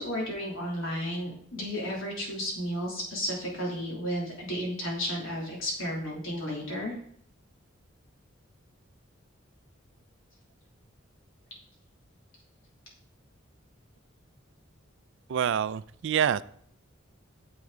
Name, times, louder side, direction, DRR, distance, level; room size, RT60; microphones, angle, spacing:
voice 1, 0.0-7.0, equal, 75° left, -2 dB, 3.0 m, -33 dB
voice 2, 15.3-16.4, right 8 dB, 65° right, 17 dB, 0.3 m, -26 dB
9.4 x 7.1 x 3.8 m, 0.63 s
head